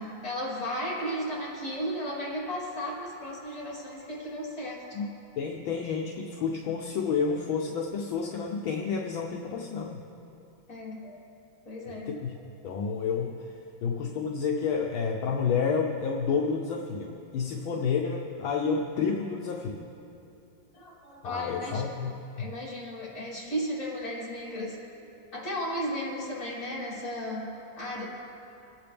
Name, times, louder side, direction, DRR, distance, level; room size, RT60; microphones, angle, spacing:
voice 1, 0.0-4.8 10.7-11.2 11.7-12.1 20.7-21.8 22.4-24.8 25.3-27.5 27.8-28.1, equal, 45° left, -8 dB, 3.9 m, -34 dB
voice 2, 5.4-10.0 11.9-12.3 12.6-19.8 21.2-22.5, left 5 dB, 80° left, 1 dB, 1.6 m, -30 dB
26.0 x 8.9 x 3.4 m, 2.9 s
omnidirectional pair, 2.2 m